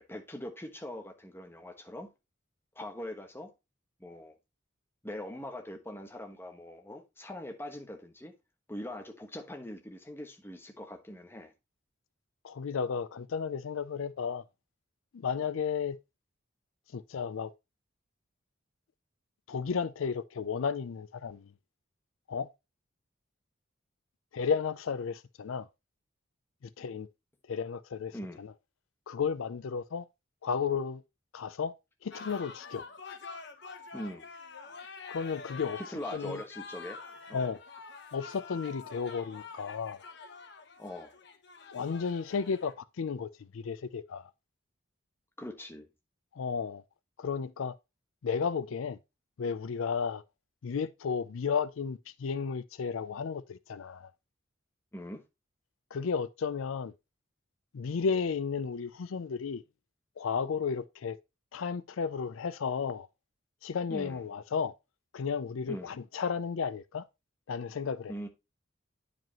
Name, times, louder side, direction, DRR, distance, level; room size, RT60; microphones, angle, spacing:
voice 1, 0.0-2.1 2.7-3.5 4.0-4.4 5.0-8.4 8.7-11.5 28.1-28.4 33.9-34.3 35.8-37.0 37.3-37.6 40.8-41.1 45.4-45.9 54.9-55.2 63.9-64.2 65.7-65.9 68.1-68.3, left 1 dB, 10° left, 1.1 m, -42 dB
voice 2, 12.4-14.4 15.1-16.0 16.9-17.5 19.5-21.5 22.3-22.5 24.3-25.7 26.8-27.1 27.5-28.5 29.1-30.0 30.4-31.0 31.3-31.7 32.0-32.8 35.1-35.8 36.1-36.4 37.3-37.6 38.1-40.0 41.7-44.2 46.3-46.8 47.2-47.8 48.2-49.0 49.4-50.2 50.6-54.1 55.9-56.9 57.7-59.6 60.2-61.2 61.5-63.1 63.6-64.7 65.1-67.0 67.5-68.1, left 6 dB, 80° left, 0.4 m, -33 dB
sound 1, 32.1-42.7, left 4 dB, 55° left, 1.0 m, -47 dB
9.2 x 5.1 x 2.9 m
head